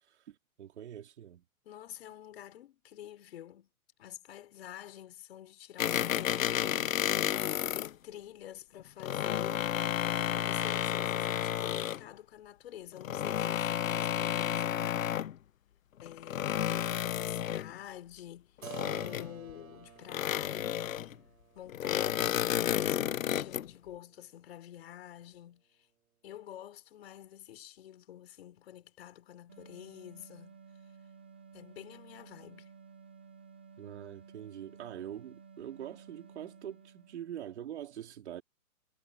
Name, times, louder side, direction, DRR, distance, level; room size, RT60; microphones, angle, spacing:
voice 1, 0.1-1.4 33.8-38.4, right 10 dB, 50° right, 3.8 m, -44 dB
voice 2, 1.6-3.7 4.0-7.5 7.7-9.7 10.4-15.2 16.0-18.6 19.0-21.1 21.5-25.9 26.2-30.6 31.5-32.7, left 11 dB, 45° left, 5.5 m, -48 dB
sound 1, 5.8-7.9 8.8-12.1 13.0-15.3 16.0-17.7 18.6-19.5 20.1-21.2 21.7-23.7, left 10 dB, 60° left, 0.9 m, -31 dB
Keyboard (musical), 18.6-24.2, right 7 dB, 70° right, 5.9 m, -52 dB
sound 2, 29.5-37.6, right 5 dB, 10° right, 0.5 m, -55 dB
hypercardioid pair, 165°, 44 cm